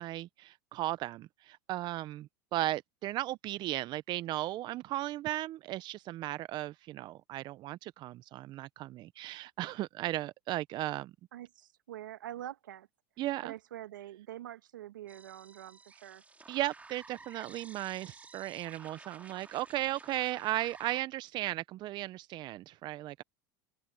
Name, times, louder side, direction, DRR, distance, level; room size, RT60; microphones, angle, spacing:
voice 1, 0.0-11.1 13.2-13.5 16.5-23.2, right 15 dB, 45° right, 0.7 m, -36 dB
voice 2, 11.3-12.9 13.4-16.2, right 12 dB, 90° right, 2.0 m, -45 dB
sound 1, 15.1-21.0, right 3 dB, 15° right, 2.6 m, -53 dB
open air
hypercardioid pair, 100°, 10 cm